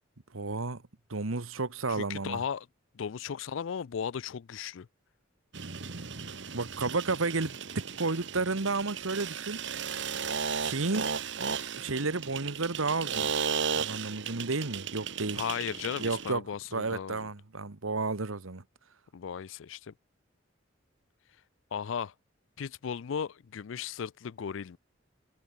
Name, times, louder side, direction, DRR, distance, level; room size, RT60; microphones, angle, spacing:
voice 1, 0.3-0.8 1.1-2.4 6.5-9.6 10.6-11.1 11.7-13.3 13.7-15.4 16.0-16.4 16.7-18.6, right 3 dB, 90° right, 1.4 m, -32 dB
voice 2, 1.9-2.7 2.9-4.9 15.4-17.3 19.1-19.9 21.7-22.1 22.6-24.8, left 7 dB, 70° left, 0.4 m, -36 dB
sound 1, 5.5-16.3, right 6 dB, 60° right, 1.4 m, -35 dB
head